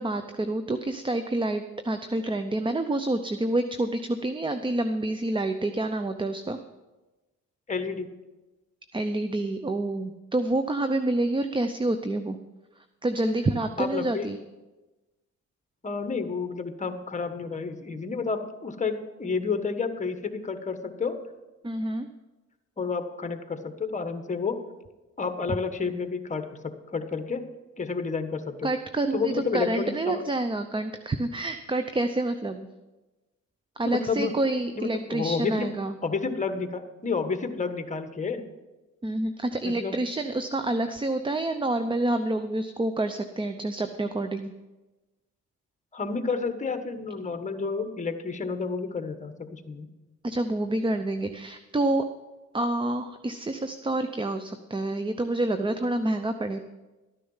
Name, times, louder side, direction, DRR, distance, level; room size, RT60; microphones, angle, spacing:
voice 1, 0.0-6.6 8.9-12.4 13.0-14.4 21.6-22.1 28.6-32.7 33.8-35.9 39.0-44.5 50.2-52.0 52.5-56.6, right 2 dB, 15° right, 9 dB, 0.7 m, -28 dB
voice 2, 7.7-8.1 13.2-13.3 13.8-14.2 15.8-21.2 22.8-24.6 25.2-26.4 26.9-27.4 27.8-28.7 29.1-30.2 33.8-34.3 34.8-35.7 36.0-38.4 39.6-40.0 45.9-49.9, left 4 dB, 25° left, 8 dB, 1.4 m, -30 dB
13.0 x 10.0 x 5.6 m, 1.1 s
cardioid pair, 90°, 30 cm